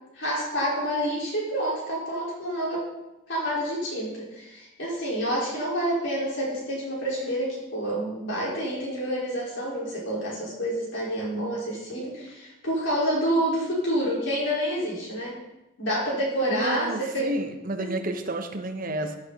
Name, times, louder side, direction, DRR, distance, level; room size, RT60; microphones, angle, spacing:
voice 1, 0.2-2.8 3.3-15.3 15.8-17.3 17.8-17.9, equal, 60° left, -5 dB, 4.9 m, -28 dB
voice 2, 16.5-19.2, right 1 dB, 40° right, 6 dB, 1.1 m, -30 dB
15.0 x 8.0 x 4.2 m, 0.97 s
head